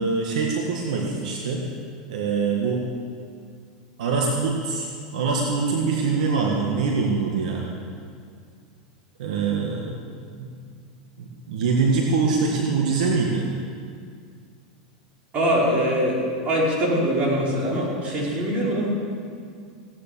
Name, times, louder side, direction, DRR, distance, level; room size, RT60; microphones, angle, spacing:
voice 1, 0.0-1.6 2.1-2.8 4.0-4.9 5.1-7.7 9.2-10.0 10.4-10.5 11.2-13.5, right 4 dB, 75° right, -1 dB, 1.7 m, -24 dB
voice 2, 15.3-16.1 16.4-18.9, equal, 35° right, -4 dB, 5.0 m, -22 dB
17.0 x 9.6 x 7.0 m, 2.2 s
hypercardioid pair, 110°, 4 cm